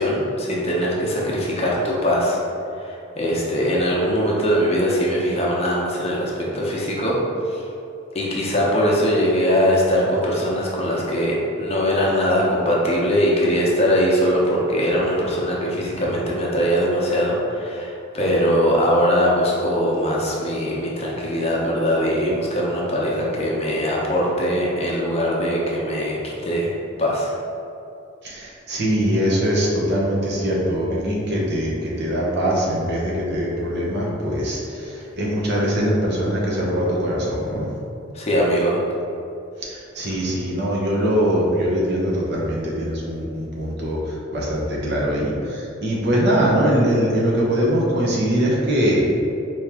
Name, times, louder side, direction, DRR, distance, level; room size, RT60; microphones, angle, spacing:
voice 1, 0.0-2.4 2.8-7.2 7.4-7.6 8.1-27.3 38.1-38.8, equal, 30° left, -4 dB, 0.7 m, -21 dB
voice 2, 28.2-37.7 39.6-49.0, equal, 55° right, -4 dB, 0.9 m, -22 dB
4.5 x 3.0 x 3.5 m, 2.7 s
head